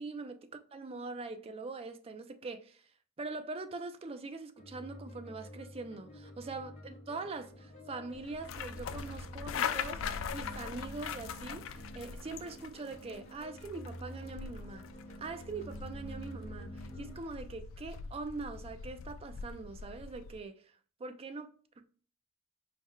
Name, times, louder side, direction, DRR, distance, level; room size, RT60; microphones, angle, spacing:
voice 1, 0.0-2.8 3.2-10.0 10.3-14.9 15.2-20.6 21.0-21.9, right 3 dB, 30° right, 0.4 m, -43 dB
sound 1, 4.6-17.1, equal, 35° left, 1.0 m, -49 dB
sound 2, 8.1-20.4, left 7 dB, 70° left, 0.3 m, -42 dB
4.6 x 2.1 x 3.6 m
head